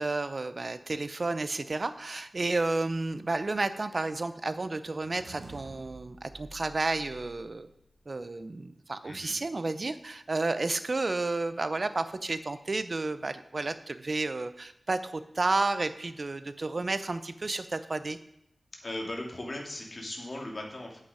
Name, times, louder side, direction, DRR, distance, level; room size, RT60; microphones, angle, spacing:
voice 1, 0.0-7.7 8.1-18.2, right 3 dB, 50° right, 12 dB, 0.7 m, -31 dB
sound 1, 4.8-8.1, right 3 dB, 75° right, 1.3 m, -50 dB
voice 2, 9.0-9.4 18.8-21.0, left 1 dB, 45° left, 0 dB, 2.4 m, -38 dB
8.5 x 8.1 x 5.0 m, 0.79 s
wide cardioid pair, 90°, 0 cm